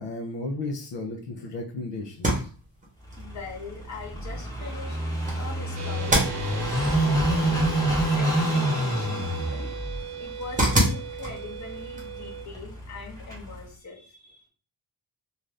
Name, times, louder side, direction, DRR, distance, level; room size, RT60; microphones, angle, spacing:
voice 1, 0.0-2.5, left 2 dB, 80° left, 3 dB, 0.6 m, -34 dB
sound 1, 2.1-13.7, right 1 dB, 20° right, 0.9 m, -32 dB
Car passing by / Idling, 3.0-13.7, right 1 dB, 10° left, 0.6 m, -28 dB
voice 2, 3.2-5.0 5.4-7.4 8.1-9.7 10.2-14.5, left 4 dB, 40° left, 1 dB, 0.8 m, -42 dB
sound 2, 5.8-12.5, right 9 dB, 70° right, 0.6 m, -38 dB
2.6 x 2.4 x 3.2 m, 0.38 s
wide cardioid pair, 165°, 44 cm